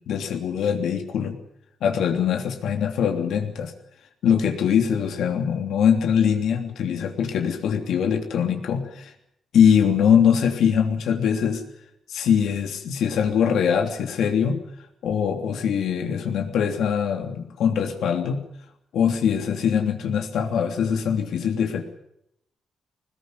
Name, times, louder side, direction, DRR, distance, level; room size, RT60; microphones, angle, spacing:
voice 1, 0.0-1.4 1.8-3.7 4.2-9.1 9.5-11.6 12.1-14.6 15.0-18.4 18.9-21.8, left 7 dB, 80° left, 5 dB, 3.1 m, -22 dB
21.5 x 20.0 x 7.9 m, 0.76 s
wide cardioid pair, 175°, 0 cm